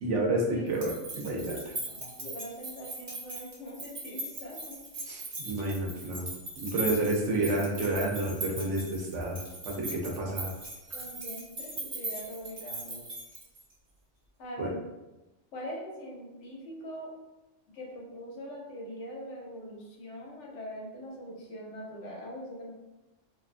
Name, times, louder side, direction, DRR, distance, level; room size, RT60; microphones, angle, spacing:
voice 1, 0.0-1.7 5.1-6.3 6.6-9.4 9.6-10.5 14.6-14.7, right 2 dB, 85° right, -1 dB, 1.0 m, -30 dB
sound 1, 0.7-13.7, right 2 dB, 45° right, 0.8 m, -39 dB
voice 2, 1.5-4.8 10.9-13.1 14.4-14.8 15.5-17.1 17.7-22.7, equal, 85° left, -3 dB, 1.0 m, -42 dB
2.6 x 2.2 x 2.4 m, 1.0 s
omnidirectional pair, 1.2 m